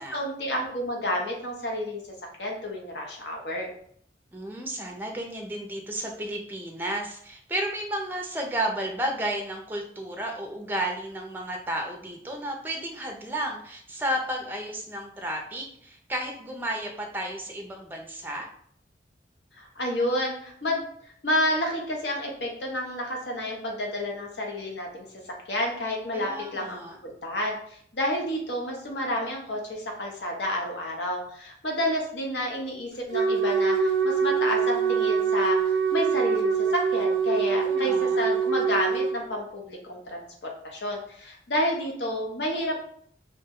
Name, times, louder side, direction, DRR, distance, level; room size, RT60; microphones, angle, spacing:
voice 1, 0.0-2.0 2.4-3.7 19.6-20.8 21.2-25.1 25.5-27.6 27.9-42.8, left 1 dB, 75° left, 0 dB, 0.8 m, -30 dB
voice 2, 4.3-18.5 26.1-27.0 37.5-38.2, right 1 dB, 10° right, 2 dB, 0.4 m, -32 dB
Wind instrument woodwind instrument, 33.1-39.2, right 5 dB, 80° right, 0.3 m, -24 dB
2.8 x 2.1 x 3.5 m, 0.63 s
head